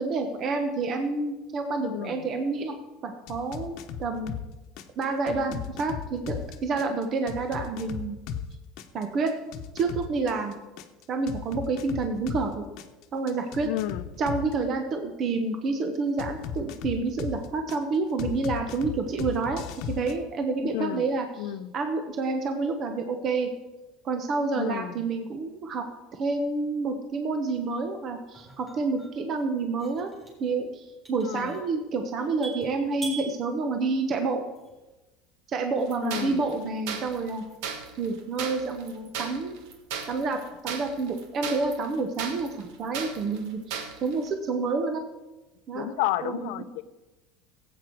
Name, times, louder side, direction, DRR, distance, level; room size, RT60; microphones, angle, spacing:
voice 1, 0.0-2.8 3.0-3.7 4.0-4.3 5.0-8.2 8.9-9.3 9.7-10.6 11.1-12.6 13.1-13.7 14.2-23.5 24.0-25.8 26.1-30.1 30.4-34.4 35.5-37.4 38.0-39.6 40.1-45.1 45.7-45.9 46.2-46.5, right 3 dB, 40° right, 6 dB, 1.1 m, -29 dB
voice 2, 1.8-2.2 13.6-14.1 20.7-21.1 21.4-21.7 24.6-24.9 31.3-31.5 36.0-36.4 45.7-46.8, left 14 dB, 80° left, 12 dB, 0.7 m, -31 dB
sound 1, 3.3-4.5 4.8-8.5 8.8-12.5 12.8-14.5 16.2-17.8 18.2-20.1, left 8 dB, 65° left, 1.1 m, -36 dB
sound 2, 27.5-34.9, right 4 dB, 15° right, 3.5 m, -45 dB
sound 3, 35.9-44.3, right 6 dB, 75° right, 1.5 m, -36 dB
16.5 x 8.2 x 4.7 m, 1.1 s
cardioid pair, 135°, 0 cm